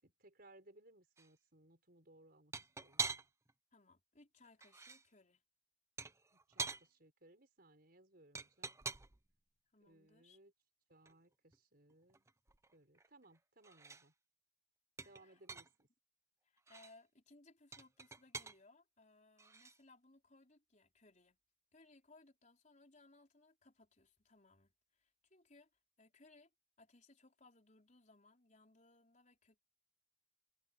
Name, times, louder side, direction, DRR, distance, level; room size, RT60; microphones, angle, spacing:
voice 1, 0.0-2.5 2.8-3.0 6.5-8.7 9.8-10.5 10.9-12.3 12.7-14.1 15.0-15.9, right 2 dB, 55° right, 5.5 m, -65 dB
sound 1, 1.2-1.3 2.5-3.5 4.4-5.0 6.0-6.9 8.4-9.3 11.1-11.2 11.5-11.6 11.9-13.4 13.6-14.1 15.0-15.8 16.6-17.0 17.7-18.6 19.4-19.8, right 4 dB, 15° right, 0.6 m, -45 dB
voice 2, 3.7-5.4 9.7-10.4 15.0-15.4 16.4-21.4 21.7-25.7 26.0-26.5 26.8-29.6, left 2 dB, 40° left, 4.6 m, -66 dB
head